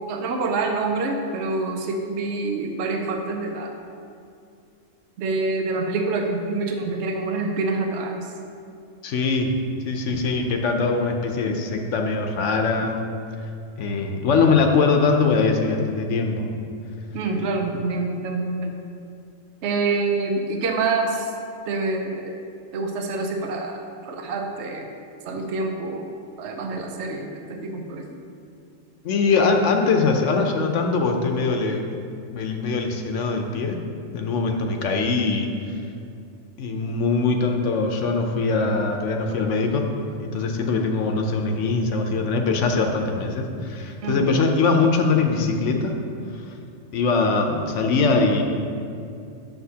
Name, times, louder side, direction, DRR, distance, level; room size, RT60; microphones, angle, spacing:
voice 1, 0.1-3.7 5.2-8.3 17.1-18.7 19.6-21.3 21.7-22.3 22.7-24.9 25.2-26.0 26.4-28.2 44.0-44.3, right 3 dB, 70° right, 3 dB, 0.9 m, -26 dB
voice 2, 9.0-9.5 9.8-13.0 13.8-16.5 29.0-31.8 32.3-33.8 34.1-35.5 36.6-39.8 40.2-45.9 46.9-48.4, left 4 dB, 75° left, 3 dB, 1.0 m, -22 dB
8.0 x 6.9 x 2.8 m, 2.5 s
omnidirectional pair, 1.3 m